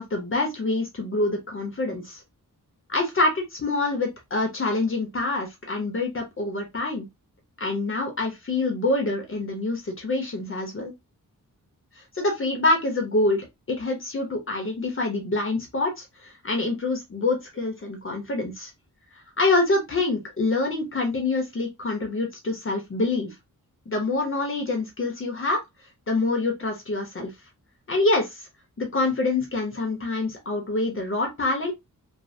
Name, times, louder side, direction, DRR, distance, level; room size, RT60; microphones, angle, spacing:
voice 1, 0.0-2.2 2.9-7.1 7.6-10.9 12.0-18.7 19.4-23.3 23.9-25.6 26.1-27.3 27.9-28.5 28.8-31.7, left 2 dB, 40° left, 0.8 m, -26 dB
3.2 x 2.1 x 2.6 m
wide cardioid pair, 145°, 34 cm